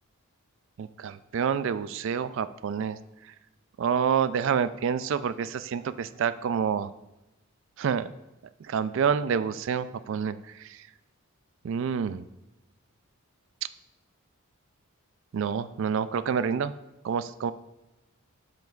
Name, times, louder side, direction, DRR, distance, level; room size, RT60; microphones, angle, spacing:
voice 1, 0.8-3.0 3.8-6.9 7.8-8.1 8.7-10.7 11.6-12.2 15.3-16.7 17.0-17.5, right 7 dB, 60° right, 14 dB, 0.3 m, -28 dB
7.6 x 7.1 x 2.4 m, 0.96 s
head